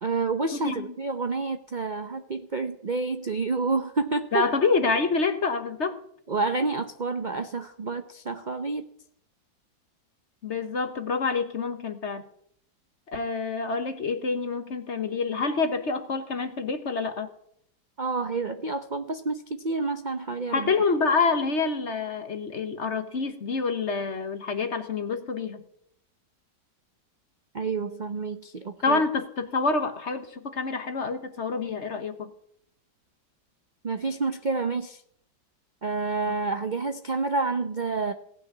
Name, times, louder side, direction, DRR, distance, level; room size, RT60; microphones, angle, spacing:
voice 1, 0.0-4.5 6.3-8.9 18.0-20.7 27.5-29.0 33.8-35.0 35.8-38.1, right 3 dB, 75° right, 8 dB, 0.4 m, -29 dB
voice 2, 4.3-6.0 10.4-12.2 13.1-17.3 20.5-25.6 28.8-32.3, left 4 dB, 45° left, 9 dB, 1.1 m, -27 dB
17.5 x 6.1 x 9.5 m, 0.68 s
omnidirectional pair, 2.1 m